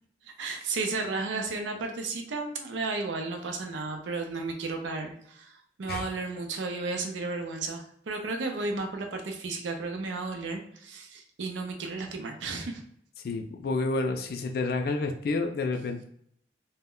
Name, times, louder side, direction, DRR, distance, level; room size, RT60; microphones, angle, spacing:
voice 1, 0.4-12.8, right 3 dB, 90° right, 4 dB, 0.5 m, -33 dB
voice 2, 13.2-16.0, left 3 dB, 55° left, 4 dB, 0.3 m, -29 dB
2.1 x 2.1 x 3.6 m, 0.67 s
head